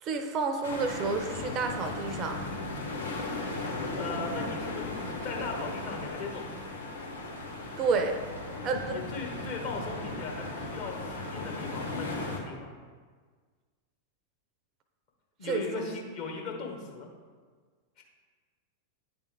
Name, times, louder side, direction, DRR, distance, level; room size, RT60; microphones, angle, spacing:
voice 1, 0.0-2.4 7.8-8.2 8.6-9.0 15.4-15.9, right 4 dB, 35° right, 6 dB, 0.5 m, -30 dB
sound 1, 0.6-12.4, left 2 dB, 75° left, 1.0 m, -36 dB
voice 2, 4.0-4.8 5.2-6.5 8.9-12.7 15.4-17.1 18.0-18.1, left 4 dB, 45° left, 0 dB, 1.2 m, -38 dB
9.2 x 3.4 x 3.3 m, 1.6 s
figure-of-eight pair, 90°, 0 cm